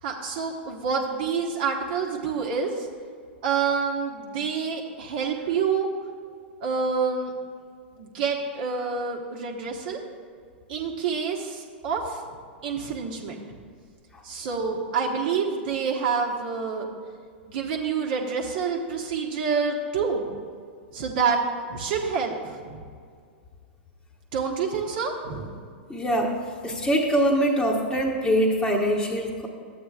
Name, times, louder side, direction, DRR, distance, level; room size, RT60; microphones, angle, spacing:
voice 1, 0.0-2.9 3.4-5.9 6.6-7.3 8.0-10.0 10.7-12.2 12.6-13.4 14.2-16.9 17.5-20.3 20.9-21.4 21.7-22.8 24.3-25.5, right 5 dB, 60° right, -1 dB, 1.1 m, -27 dB
voice 2, 25.9-29.5, equal, 10° left, -4 dB, 1.0 m, -23 dB
12.5 x 8.5 x 2.4 m, 2.1 s
hypercardioid pair, 105°, 6 cm